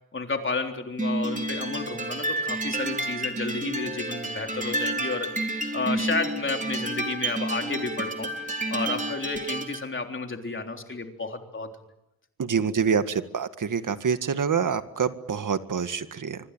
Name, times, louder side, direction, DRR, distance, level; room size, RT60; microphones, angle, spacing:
voice 1, 0.1-5.3 5.7-8.3 8.7-11.8, left 3 dB, 35° left, 4 dB, 3.6 m, -31 dB
sound 1, 1.0-9.9, right 2 dB, 20° right, 3.1 m, -30 dB
voice 2, 12.4-16.4, right 6 dB, 60° right, 10 dB, 1.9 m, -26 dB
26.0 x 25.0 x 9.1 m, 0.89 s
wide cardioid pair, 120°, 36 cm